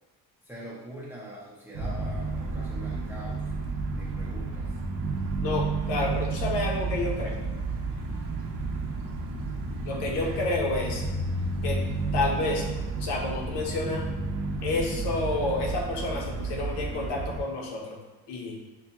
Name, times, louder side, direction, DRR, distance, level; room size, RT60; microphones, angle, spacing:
voice 1, 0.5-3.4 3.9-4.7 10.1-10.3, right 1 dB, 5° right, -6 dB, 0.5 m, -43 dB
sound 1, 1.7-17.4, right 3 dB, 50° right, 0.6 m, -31 dB
voice 2, 5.4-7.4 9.8-11.0 11.6-11.8 12.1-12.6 13.0-14.0 14.6-18.0 18.3-18.6, left 2 dB, 75° left, 0 dB, 0.9 m, -29 dB
sound 2, 5.8-14.0, right 1 dB, 90° right, 0.8 m, -42 dB
5.5 x 2.3 x 2.8 m, 1.2 s
cardioid pair, 170°, 41 cm